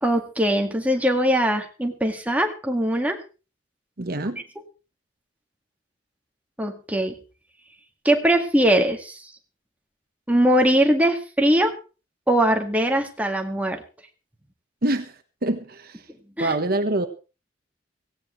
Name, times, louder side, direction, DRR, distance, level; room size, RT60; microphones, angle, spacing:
voice 1, 0.0-3.2 6.6-7.2 8.1-9.3 10.3-11.8 12.3-13.8 16.4-16.5, right 1 dB, 10° right, 2.0 m, -21 dB
voice 2, 4.0-4.4 14.8-15.1 15.4-16.0 16.4-17.1, right 1 dB, 55° right, 1.2 m, -25 dB
17.0 x 16.5 x 3.3 m
head